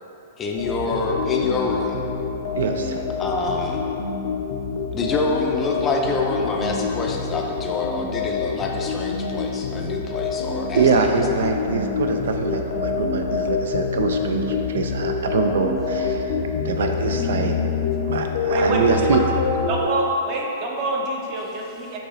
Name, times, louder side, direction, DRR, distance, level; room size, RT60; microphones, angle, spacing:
voice 1, 0.4-2.1 3.2-3.9 4.9-11.1 11.4-11.5, left 3 dB, 20° left, 0 dB, 0.4 m, -26 dB
sound 1, 0.6-19.8, left 5 dB, 65° left, 0.6 m, -26 dB
voice 2, 2.5-3.0 10.7-17.6 18.0-19.2, right 5 dB, 80° right, 4 dB, 0.3 m, -24 dB
voice 3, 18.4-19.2 19.7-22.0, right 2 dB, 35° right, -1 dB, 0.7 m, -26 dB
6.2 x 2.8 x 3.0 m, 2.9 s
hypercardioid pair, 150°, 0 cm